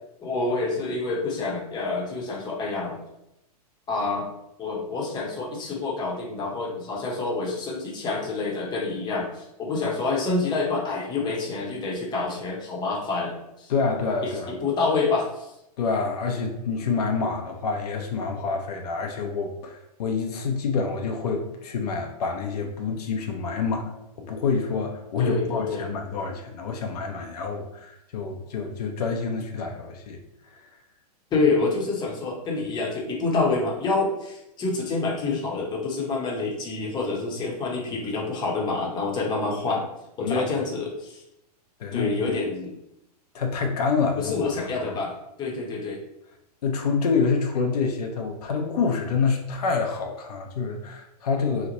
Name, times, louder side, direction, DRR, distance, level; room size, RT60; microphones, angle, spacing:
voice 1, 0.2-3.0 3.9-4.3 4.6-13.7 14.2-14.3 14.6-15.5 25.2-25.9 31.3-39.8 40.2-41.2 41.9-42.7 44.2-46.0, left 3 dB, 20° left, -2 dB, 0.8 m, -27 dB
voice 2, 13.7-14.6 15.8-30.2 30.4-30.6 40.2-40.5 41.8-42.1 43.3-44.3 44.7-44.8 46.6-51.7, left 4 dB, 70° left, 2 dB, 0.6 m, -27 dB
3.0 x 2.1 x 3.8 m, 0.84 s
hypercardioid pair, 125°, 20 cm